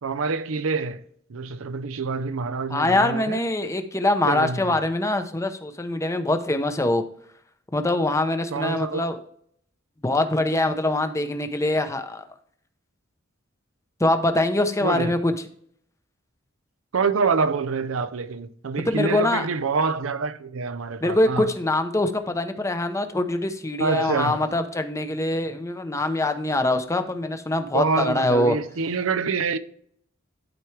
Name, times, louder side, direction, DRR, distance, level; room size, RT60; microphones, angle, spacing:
voice 1, 0.0-1.0 1.3-3.4 4.3-4.8 8.5-9.0 14.8-15.1 16.9-21.5 23.8-24.4 27.7-29.6, right 4 dB, 80° right, 0.6 m, -26 dB
voice 2, 2.7-7.0 7.7-9.2 10.0-12.2 14.0-15.3 18.9-19.5 21.0-28.6, left 2 dB, 15° left, 0.7 m, -23 dB
11.5 x 4.5 x 3.2 m
head